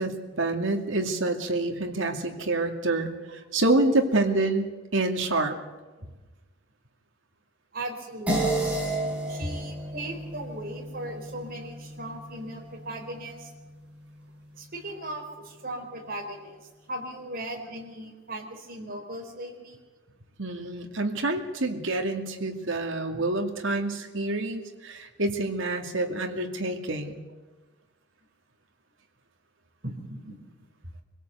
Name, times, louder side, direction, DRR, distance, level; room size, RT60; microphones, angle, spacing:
voice 1, 0.0-5.5 20.4-27.2, right 2 dB, 70° right, 3 dB, 2.4 m, -27 dB
voice 2, 7.7-8.8 9.3-13.5 14.6-19.8 23.1-23.2 29.8-30.4, right 1 dB, 45° right, 1 dB, 4.4 m, -38 dB
sound 1, 8.3-13.0, right 2 dB, 5° right, 6.3 m, -31 dB
25.0 x 17.0 x 8.2 m, 1.2 s
head